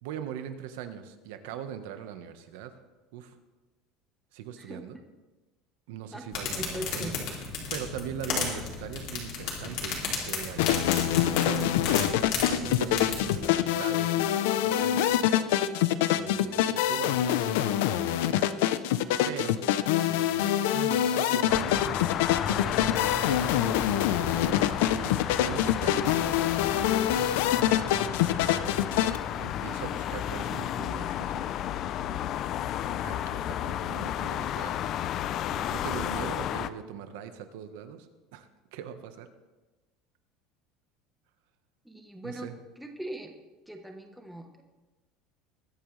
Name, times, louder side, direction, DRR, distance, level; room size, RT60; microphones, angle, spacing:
voice 1, 0.0-2.7 3.1-3.4 4.3-5.0 5.9-7.1 7.7-15.7 16.1-18.4 18.8-19.6 20.0-22.1 22.4-27.1 28.3-31.6 32.1-32.4 32.8-34.8 35.5-39.3 42.2-42.6, right 9 dB, 80° right, 9 dB, 1.2 m, -41 dB
campfire medium slight forest slap echo, 6.3-13.5, left 5 dB, 50° left, 3.0 m, -34 dB
voice 2, 6.5-7.1 41.8-42.5 42.8-43.3 43.7-44.6, right 1 dB, ahead, 3 dB, 1.0 m, -40 dB
sound 1, 10.6-29.2, left 12 dB, 90° left, 0.6 m, -25 dB
sound 2, 21.5-36.7, left 11 dB, 35° left, 0.4 m, -32 dB
21.0 x 9.1 x 3.3 m, 1.2 s
cardioid pair, 170°, 0 cm